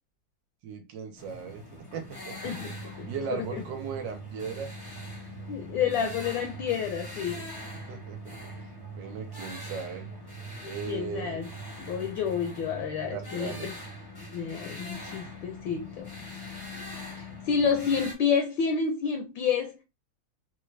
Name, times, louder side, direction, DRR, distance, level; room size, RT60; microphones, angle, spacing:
voice 1, 0.6-2.4 3.1-4.7 7.9-8.5 9.0-10.1 10.7-11.4 13.1-13.7, right 6 dB, 75° right, 1.3 m, -37 dB
sound 1, 1.2-18.1, left 2 dB, 20° left, 0.6 m, -43 dB
voice 2, 2.4-3.6 5.5-7.5 10.6-11.5 11.8-13.7 14.3-16.1 17.2-19.8, left 6 dB, 75° left, 1.4 m, -29 dB
sound 2, 2.4-15.6, right 6 dB, 90° right, 1.4 m, -45 dB
3.9 x 2.1 x 3.2 m
omnidirectional pair, 2.1 m